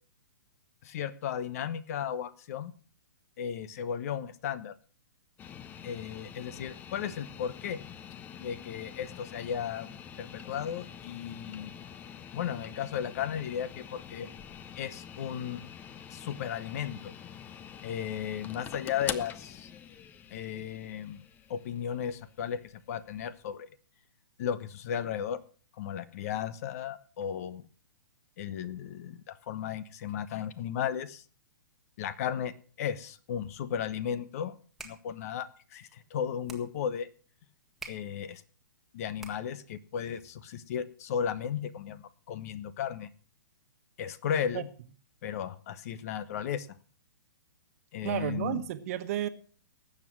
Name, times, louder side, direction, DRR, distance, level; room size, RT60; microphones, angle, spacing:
voice 1, 0.8-2.7 3.4-4.7 5.8-7.8 8.4-9.9 10.2-11.7 12.3-14.3 14.8-15.6 16.1-17.1 17.8-19.7 20.3-21.2 21.5-22.6 22.9-23.7 24.4-25.4 25.8-27.6 28.4-31.2 32.0-34.6 34.8-37.1 37.9-38.4 38.9-43.1 44.0-44.7 45.2-46.7 47.9-48.6, left 8 dB, 45° left, 1.1 m, -35 dB
sound 1, 5.4-23.5, left 8 dB, 15° left, 0.7 m, -45 dB
sound 2, 34.6-39.7, right 3 dB, ahead, 1.7 m, -51 dB
voice 2, 48.0-49.3, right 12 dB, 45° right, 1.3 m, -32 dB
19.0 x 7.5 x 6.2 m
hypercardioid pair, 150°, 11 cm